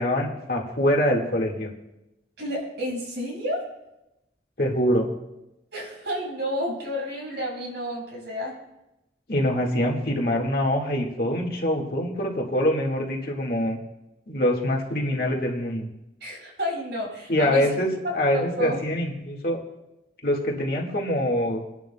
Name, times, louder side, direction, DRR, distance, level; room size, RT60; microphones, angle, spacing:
voice 1, 0.0-1.7 4.6-5.1 9.3-13.8 14.3-15.9 17.3-19.6 20.2-21.6, left 1 dB, 55° left, 0 dB, 1.9 m, -24 dB
voice 2, 2.4-3.7 5.7-8.6 16.2-17.7 18.0-18.8, equal, 75° right, -3 dB, 5.8 m, -30 dB
28.5 x 11.0 x 2.3 m, 0.93 s
head